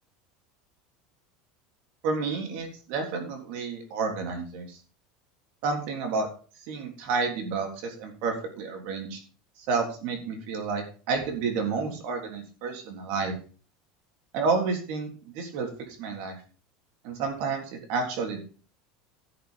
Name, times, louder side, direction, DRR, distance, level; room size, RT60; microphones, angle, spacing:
voice 1, 2.0-4.8 5.6-6.3 6.7-9.2 9.7-13.4 14.3-15.7 16.0-16.4 17.0-18.4, right 4 dB, 60° right, 3 dB, 3.5 m, -30 dB
12.0 x 6.7 x 5.2 m, 0.38 s
supercardioid pair, 155°, 3 cm